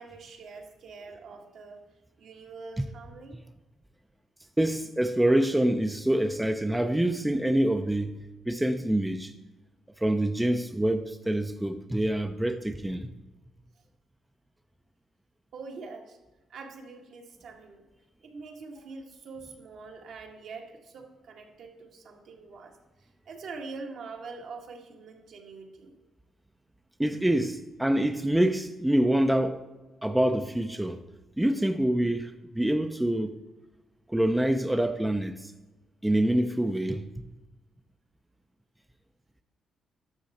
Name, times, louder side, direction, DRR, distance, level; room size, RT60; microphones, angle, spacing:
voice 1, 0.0-1.8 2.2-3.4 13.7-13.8 15.5-16.2 16.5-17.8 18.2-26.0, right 4 dB, 70° right, 1.7 m, -44 dB
voice 2, 4.6-8.2 8.5-9.3 10.0-13.1 27.0-29.6 30.0-31.0 31.4-33.3 34.1-35.5 36.0-37.3, right 1 dB, 5° right, 0.5 m, -26 dB
11.5 x 6.9 x 4.2 m
cardioid pair, 90°, 0 cm